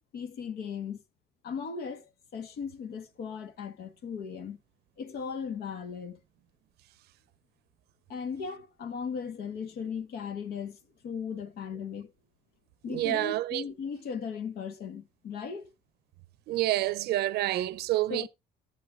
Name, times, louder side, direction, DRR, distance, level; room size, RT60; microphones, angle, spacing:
voice 1, 0.1-1.0 1.4-4.6 5.0-6.2 8.1-12.1 12.8-15.7 18.1-18.3, left 6 dB, 70° left, 1.6 m, -37 dB
voice 2, 12.9-13.6 16.5-18.3, right 15 dB, 75° right, 0.7 m, -28 dB
11.5 x 6.9 x 3.9 m
cardioid pair, 110°, 17 cm